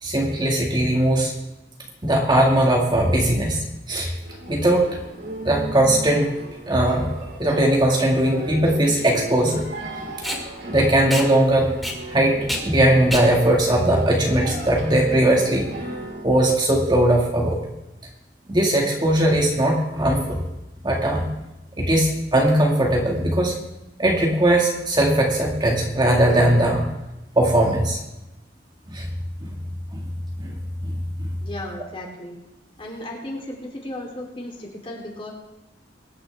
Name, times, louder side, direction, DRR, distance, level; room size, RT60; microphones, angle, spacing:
voice 1, 0.0-1.3 2.0-4.1 4.5-4.9 5.4-6.3 6.7-7.1 7.4-9.6 10.7-11.7 12.1-15.7 16.2-17.6 18.5-20.4 20.8-21.3 21.8-23.5 24.0-26.9 27.4-28.0 28.9-29.1 29.4-29.5 29.9-30.0 30.4-30.5 30.8-31.3, right 1 dB, 25° right, -1 dB, 2.1 m, -19 dB
sound 1, 4.2-16.2, right 1 dB, 65° right, 3.3 m, -36 dB
Packing tape duct tape, 7.5-14.9, equal, ahead, 2.1 m, -32 dB
voice 2, 31.4-32.3 32.8-35.3, left 1 dB, 35° left, -1 dB, 3.5 m, -35 dB
23.0 x 10.0 x 3.6 m, 0.95 s
head